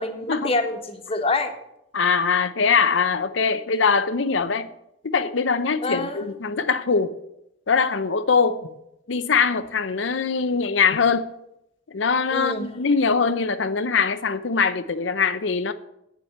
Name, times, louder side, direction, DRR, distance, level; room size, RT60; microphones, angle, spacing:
voice 1, 0.0-1.5 5.8-6.3 12.3-12.7, left 2 dB, 30° left, 1.3 m, -26 dB
voice 2, 1.9-4.7 5.0-7.1 7.7-8.7 9.1-11.3 11.9-15.7, left 5 dB, 75° left, 0.7 m, -22 dB
8.9 x 7.2 x 8.0 m
head